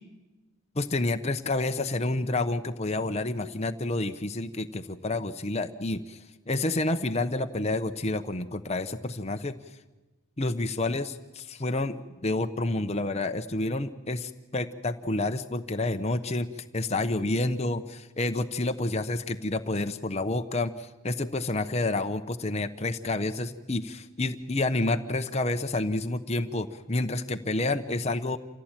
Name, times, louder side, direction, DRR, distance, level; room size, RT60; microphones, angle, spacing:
voice 1, 0.7-6.2 6.5-9.6 10.4-16.5 16.7-28.4, left 2 dB, 30° left, 7 dB, 0.9 m, -29 dB
27.0 x 16.0 x 9.0 m, 1.2 s
head